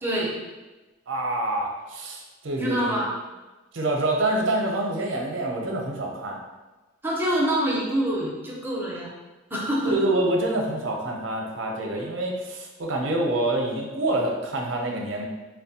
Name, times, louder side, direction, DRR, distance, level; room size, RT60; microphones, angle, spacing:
voice 1, 0.0-0.3 2.6-3.1 7.0-9.1 9.5-9.9, right 1 dB, 10° right, -4 dB, 0.6 m, -25 dB
voice 2, 1.1-3.0 3.7-6.4 9.9-15.2, right 1 dB, 70° right, 0 dB, 0.6 m, -26 dB
4.3 x 2.2 x 2.7 m, 1.1 s
head